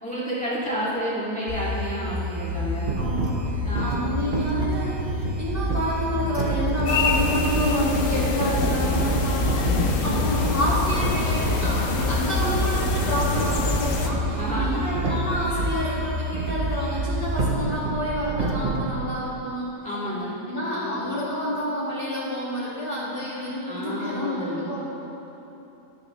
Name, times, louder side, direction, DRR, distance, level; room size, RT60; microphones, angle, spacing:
voice 1, 0.0-3.0 3.6-3.8 10.0-10.3 14.3-14.9 15.5-15.7 19.8-20.4 20.7-21.1 23.7-24.7, equal, 5° left, -9 dB, 2.2 m, -30 dB
sound 1, 1.5-17.5, equal, 75° right, 2.7 m, -29 dB
sound 2, 2.8-15.8 16.3-18.9, right 3 dB, 45° right, 0.8 m, -31 dB
voice 2, 3.0-3.3 3.8-19.7 20.5-24.8, equal, 35° left, -9 dB, 2.2 m, -28 dB
sound 3, 6.9-14.1, left 4 dB, 65° left, 1.1 m, -26 dB
18.0 x 6.3 x 3.2 m, 3.0 s
omnidirectional pair, 1.6 m